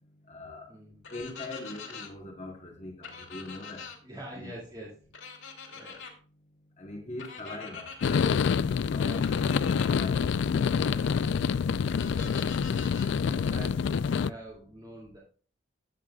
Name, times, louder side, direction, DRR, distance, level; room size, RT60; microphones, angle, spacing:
voice 1, 0.3-0.7 1.1-3.8 4.3-4.5 6.8-10.4 13.2-13.5, left 2 dB, 35° left, 1.2 m, -42 dB
sound 1, 1.0-2.1 3.0-4.0 5.1-6.1 7.2-8.2 9.2-10.1 11.9-13.1, left 5 dB, 85° left, 2.5 m, -44 dB
voice 2, 4.0-5.4 5.7-6.0 8.9-9.3 10.8-12.4 12.8-15.2, right 1 dB, 20° right, 2.5 m, -47 dB
sound 2, 8.0-14.3, left 6 dB, 65° left, 0.3 m, -27 dB
13.0 x 7.7 x 2.4 m
head